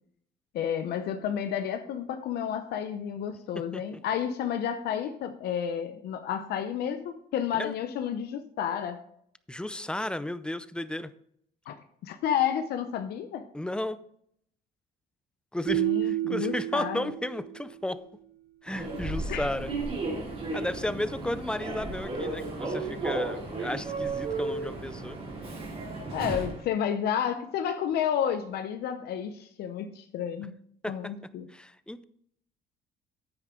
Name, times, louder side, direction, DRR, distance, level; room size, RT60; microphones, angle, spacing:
voice 1, 0.5-9.0 11.7-11.8 12.0-13.5 15.7-17.1 19.3-19.5 26.1-30.5 30.9-31.5, left 9 dB, 70° left, 7 dB, 0.7 m, -31 dB
voice 2, 9.5-11.1 13.5-14.0 15.5-18.0 18.6-19.7 20.5-25.2 30.8-31.1 31.5-32.0, left 1 dB, 5° left, 13 dB, 0.5 m, -33 dB
sound 1, 15.7-17.8, right 17 dB, 55° right, 2.1 m, -30 dB
Human voice / Subway metro underground, 18.7-26.6, right 3 dB, 35° right, 2.7 m, -34 dB
9.3 x 9.0 x 3.8 m, 0.69 s
cardioid pair, 110°, 17 cm